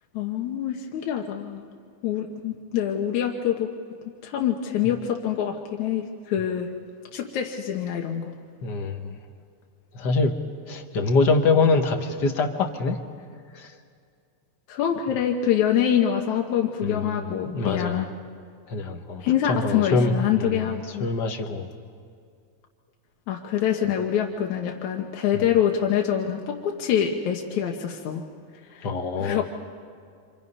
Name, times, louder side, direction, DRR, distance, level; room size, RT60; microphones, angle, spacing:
voice 1, 0.1-1.6 2.0-3.7 4.2-6.7 7.1-8.3 14.7-18.1 19.2-21.1 23.3-28.2 28.7-28.9 29.2-29.4, left 9 dB, 80° left, 1 dB, 2.5 m, -25 dB
voice 2, 8.6-9.2 9.9-10.3 10.7-13.0 13.5-13.7 16.8-18.1 18.7-20.6 21.0-21.7 23.8-23.9 25.3-25.4 28.8-29.4, left 3 dB, 45° left, 5 dB, 1.6 m, -24 dB
29.0 x 26.0 x 5.5 m, 2.2 s
omnidirectional pair, 3.4 m